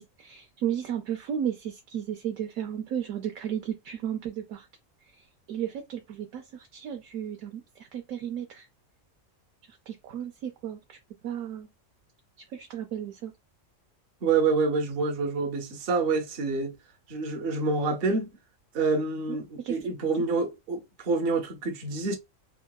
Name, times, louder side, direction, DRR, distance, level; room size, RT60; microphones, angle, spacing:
voice 1, 0.0-4.7 5.5-7.6 7.9-8.7 9.9-11.0 11.2-11.7 12.5-13.3 19.3-19.4 19.6-19.8, right 9 dB, 80° right, 0.9 m, -34 dB
voice 2, 14.2-16.7 17.1-18.3 18.7-22.2, right 4 dB, 55° right, 0.8 m, -27 dB
3.6 x 2.2 x 2.2 m
omnidirectional pair, 1.4 m